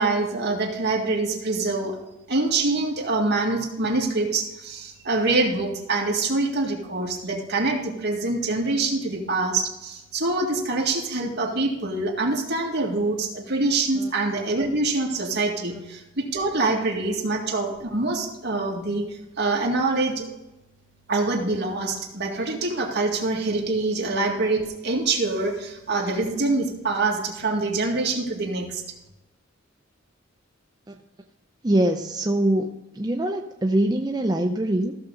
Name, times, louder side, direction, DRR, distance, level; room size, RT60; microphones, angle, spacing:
voice 1, 0.0-2.0 2.3-19.0 19.4-20.3 21.1-28.8, right 3 dB, 55° right, -1 dB, 2.0 m, -25 dB
voice 2, 31.6-32.7 32.9-35.0, right 1 dB, 20° right, 3 dB, 0.5 m, -23 dB
15.0 x 6.8 x 3.9 m, 0.96 s
head